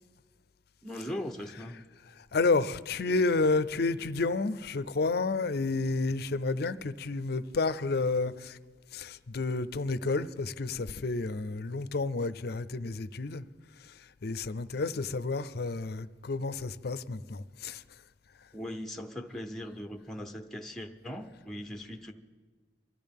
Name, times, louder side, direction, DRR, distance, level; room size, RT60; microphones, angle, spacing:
voice 1, 0.8-1.8 18.5-22.1, left 1 dB, ahead, 0.7 m, -39 dB
voice 2, 1.4-8.6 8.9-13.5 13.8-17.8, left 3 dB, 60° left, 0.5 m, -31 dB
24.0 x 14.0 x 3.6 m
head